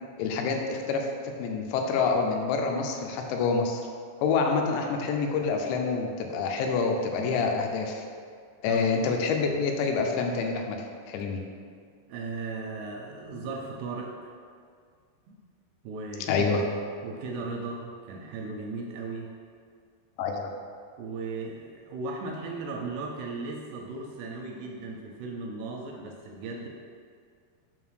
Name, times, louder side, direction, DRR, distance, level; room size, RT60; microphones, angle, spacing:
voice 1, 0.2-1.1 1.4-3.8 4.2-8.1 8.6-10.8 11.1-11.4 16.3-16.6 20.2-20.5, left 4 dB, 85° left, 2 dB, 2.9 m, -27 dB
voice 2, 8.7-9.1 12.1-14.3 15.3-15.4 15.8-16.6 17.0-19.3 21.0-26.7, right 3 dB, 80° right, 1 dB, 2.5 m, -37 dB
6.5 x 3.7 x 6.2 m, 2.1 s
omnidirectional pair, 5.1 m